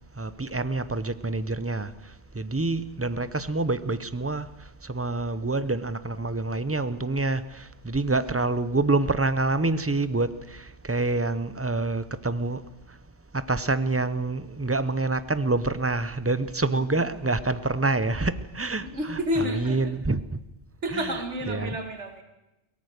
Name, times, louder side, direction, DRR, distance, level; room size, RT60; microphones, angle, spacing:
voice 1, 0.2-12.7 13.3-20.2 20.9-21.0 21.5-21.8, right 2 dB, 15° right, 0.5 m, -27 dB
voice 2, 16.7-17.0 18.8-19.9 20.8-22.2, equal, 85° right, 2.4 m, -31 dB
22.5 x 18.0 x 6.6 m
omnidirectional pair, 1.2 m